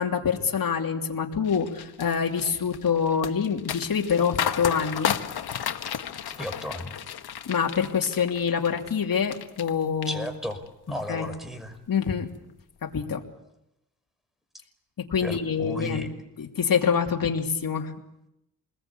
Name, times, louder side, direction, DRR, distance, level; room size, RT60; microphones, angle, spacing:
voice 1, 0.0-5.2 7.5-10.3 11.1-11.3 11.9-12.3 12.8-13.2 15.0-16.1 16.4-17.9, left 6 dB, 65° left, 2 dB, 3.0 m, -26 dB
sound 1, 1.5-9.7 10.0-10.7 11.1-11.3, left 9 dB, 80° left, 1.4 m, -33 dB
voice 2, 6.3-7.0 10.1-10.6 10.9-11.8 15.2-16.1, left 1 dB, ahead, 8 dB, 5.6 m, -34 dB
28.0 x 21.0 x 8.6 m, 0.86 s
cardioid pair, 75°, 37 cm